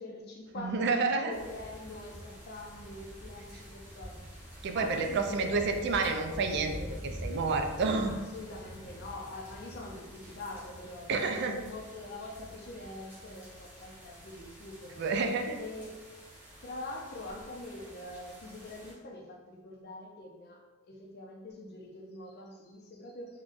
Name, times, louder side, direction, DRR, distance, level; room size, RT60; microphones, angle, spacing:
voice 1, 0.0-4.3 4.7-5.8 8.1-15.1 15.6-16.0 16.6-20.6 20.9-23.4, left 2 dB, 50° left, 0 dB, 0.5 m, -44 dB
voice 2, 0.6-1.3 4.6-8.1 11.1-11.6 15.0-15.6, right 4 dB, 55° right, 5 dB, 0.3 m, -29 dB
sound 1, 1.3-18.9, equal, 10° right, 0.8 m, -47 dB
3.7 x 2.2 x 2.5 m, 1.3 s
head